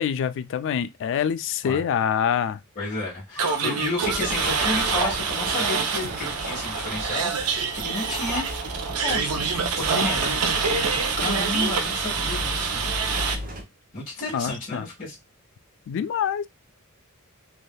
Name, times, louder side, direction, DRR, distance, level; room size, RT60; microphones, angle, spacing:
voice 1, 0.0-2.6 14.3-14.8 15.9-16.5, left 8 dB, 55° left, 0.3 m, -25 dB
voice 2, 2.7-8.4 9.0-10.6 11.2-12.8 13.9-15.2, left 3 dB, 35° left, 1.5 m, -31 dB
sound 1, 3.4-13.4, right 5 dB, 90° right, 0.6 m, -26 dB
sound 2, 4.0-13.6, equal, 40° right, 0.8 m, -36 dB
3.3 x 2.7 x 2.2 m
head